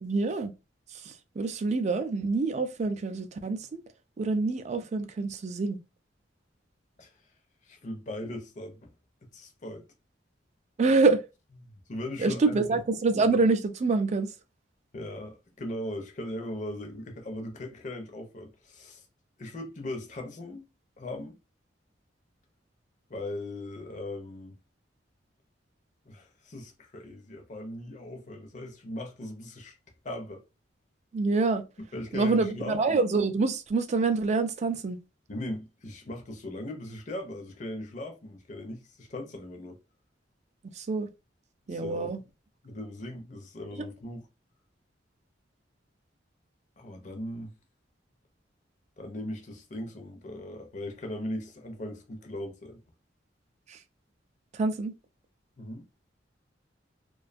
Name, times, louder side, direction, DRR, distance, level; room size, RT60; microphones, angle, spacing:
voice 1, 0.0-0.5 0.9-3.8 4.2-5.8 10.8-11.2 12.2-14.3 31.1-31.6 32.1-35.0 40.7-41.1 41.7-42.2 43.8-43.9 53.7-53.8 54.5-54.9, right 3 dB, 40° right, 0.3 m, -26 dB
voice 2, 7.6-8.9 9.3-9.8 11.6-12.8 14.9-19.0 19.4-20.7 21.0-21.4 23.1-24.6 26.1-29.8 30.0-30.4 31.9-32.8 35.3-39.8 41.7-42.1 42.6-44.2 46.8-47.5 49.0-52.8 55.6-55.9, left 1 dB, 40° left, 0.6 m, -39 dB
2.5 x 2.2 x 2.5 m
head